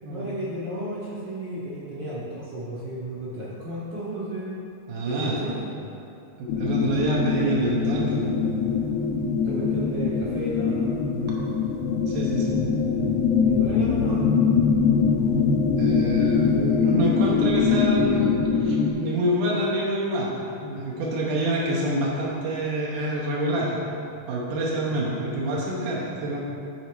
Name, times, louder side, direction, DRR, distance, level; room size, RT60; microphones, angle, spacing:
voice 1, 0.1-4.6 5.1-5.6 9.4-11.0 13.4-14.3, right 1 dB, 70° right, -8 dB, 1.1 m, -33 dB
voice 2, 4.9-5.4 6.4-8.3 12.1-12.5 15.8-23.8 24.3-26.4, right 1 dB, 90° right, -5 dB, 2.5 m, -27 dB
sound 1, 6.5-18.9, left 5 dB, 80° left, 1.9 m, -23 dB
11.0 x 4.2 x 4.5 m, 2.7 s
omnidirectional pair, 3.5 m